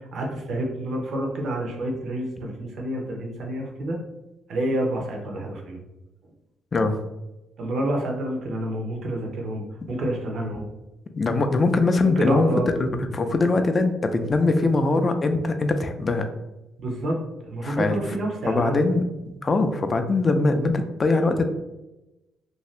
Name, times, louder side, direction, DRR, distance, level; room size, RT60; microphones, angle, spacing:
voice 1, 0.1-4.0 4.5-5.8 7.6-10.7 12.2-12.6 16.8-17.2 17.4-18.8, right 1 dB, 60° right, 1 dB, 0.7 m, -28 dB
voice 2, 11.2-12.5 12.8-16.3 17.6-18.0 18.5-19.0 19.4-21.4, left 3 dB, 35° left, 7 dB, 0.3 m, -22 dB
2.6 x 2.3 x 3.2 m, 0.97 s
cardioid pair, 90°, 0 cm